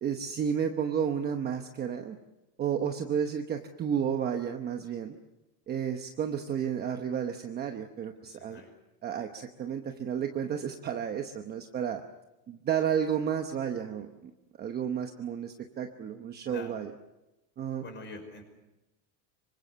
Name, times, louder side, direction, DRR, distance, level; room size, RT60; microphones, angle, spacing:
voice 1, 0.0-2.2 2.6-5.2 5.7-8.6 9.0-12.0 12.5-14.3 14.6-16.9 17.6-17.8, right 8 dB, 20° right, 5 dB, 1.0 m, -32 dB
voice 2, 8.2-8.7 16.5-16.8 17.8-18.4, left 2 dB, 25° left, 5 dB, 5.8 m, -45 dB
26.5 x 24.5 x 7.0 m, 0.97 s
cardioid pair, 175°, 46 cm